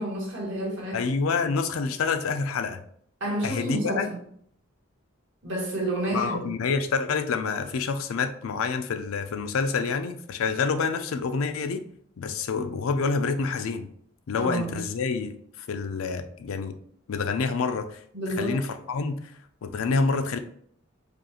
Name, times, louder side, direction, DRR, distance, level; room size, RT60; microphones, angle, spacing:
voice 1, 0.0-1.2 3.2-4.0 5.4-6.5 14.3-14.8 18.1-18.6, right 1 dB, 60° right, -2 dB, 1.3 m, -30 dB
voice 2, 0.9-2.8 3.4-4.1 6.1-11.8 12.2-13.9 14.3-16.7 17.1-18.0 18.4-19.3 19.6-20.4, left 4 dB, 80° left, 8 dB, 0.4 m, -27 dB
5.0 x 2.4 x 2.9 m, 0.64 s
head